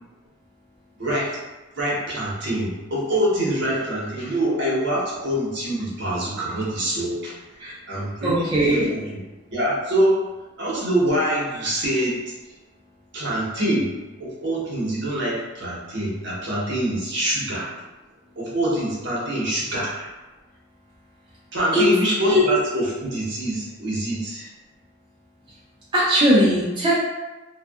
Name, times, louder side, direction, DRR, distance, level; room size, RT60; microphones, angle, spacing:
voice 1, 1.0-1.4 1.7-7.3 7.9-9.2 9.5-10.2 10.6-12.2 13.1-13.9 14.2-17.7 18.4-20.1 21.5-24.5, right 1 dB, 60° right, -6 dB, 0.8 m, -25 dB
voice 2, 8.2-8.9 21.7-21.8 22.3-22.4 25.9-26.9, equal, 25° right, -8 dB, 0.4 m, -19 dB
2.6 x 2.3 x 2.3 m, 1.1 s
head